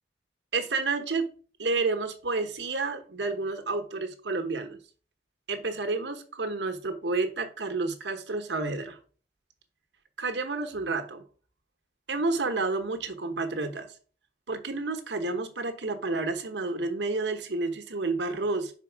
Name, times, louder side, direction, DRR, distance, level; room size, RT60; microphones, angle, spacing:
voice 1, 0.5-1.3 1.6-4.8 5.5-9.0 10.2-11.2 12.1-13.9 14.5-18.7, right 3 dB, 90° right, 1.1 m, -30 dB
5.2 x 4.5 x 5.9 m
head